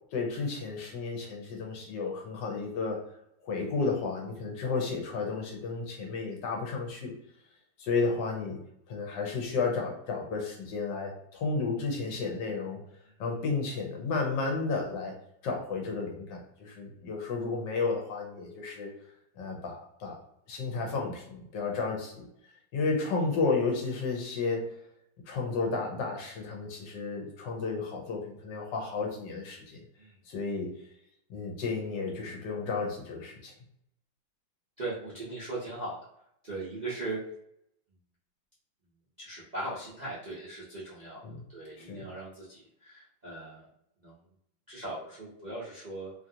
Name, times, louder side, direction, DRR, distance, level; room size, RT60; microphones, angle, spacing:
voice 1, 0.1-3.0 3.4-7.1 7.8-12.8 13.2-18.9 19.4-20.2 20.5-22.3 22.7-24.7 25.3-29.8 30.3-30.8 31.3-33.5 41.2-41.4 41.8-42.1, left 4 dB, 70° left, 1 dB, 1.3 m, -32 dB
voice 2, 34.8-36.0 36.4-37.2 39.2-41.2 41.5-43.7 44.0-44.2 44.7-46.1, right 2 dB, 45° right, -9 dB, 0.5 m, -39 dB
3.2 x 2.4 x 2.7 m, 0.74 s
omnidirectional pair, 2.1 m